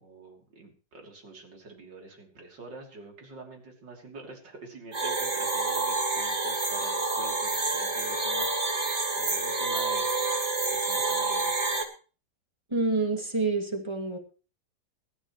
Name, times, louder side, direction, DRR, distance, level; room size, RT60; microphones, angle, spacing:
voice 1, 0.0-8.8 9.2-10.1 10.7-11.6, right 2 dB, 70° right, 1 dB, 3.8 m, -46 dB
sound 1, 4.9-11.8, right 3 dB, 40° right, 2.2 m, -28 dB
voice 2, 12.7-14.2, right 3 dB, 15° right, 3 dB, 2.2 m, -27 dB
21.5 x 11.5 x 3.1 m, 0.35 s
omnidirectional pair, 2.0 m